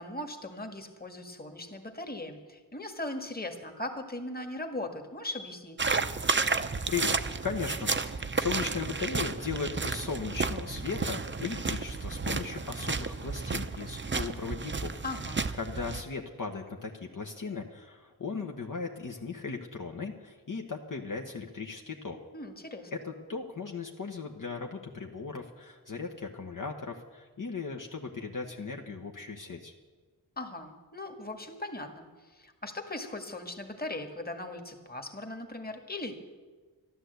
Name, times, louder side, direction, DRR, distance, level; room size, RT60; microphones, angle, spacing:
voice 1, 0.0-5.8 15.0-15.4 22.3-22.9 30.4-36.1, left 2 dB, 25° left, 5 dB, 1.7 m, -39 dB
sound 1, 5.8-16.0, right 4 dB, 30° right, 0.7 m, -32 dB
voice 2, 7.4-7.9 8.2-15.0 15.6-22.2 22.9-29.7, left 5 dB, 50° left, 2 dB, 1.2 m, -37 dB
12.5 x 11.5 x 8.1 m, 1.3 s
wide cardioid pair, 75°, 40 cm